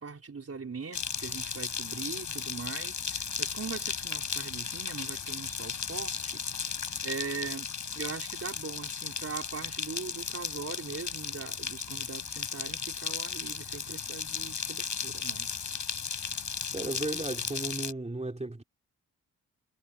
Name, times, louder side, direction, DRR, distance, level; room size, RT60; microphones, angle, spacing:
voice 1, 0.0-6.4 7.0-7.7 7.9-15.5, right 5 dB, 40° right, 4.6 m, -40 dB
sound 1, 0.9-17.9, left 6 dB, 50° left, 5.3 m, -35 dB
voice 2, 16.7-18.6, right 2 dB, 20° right, 3.6 m, -35 dB
supercardioid pair, 50°, 37 cm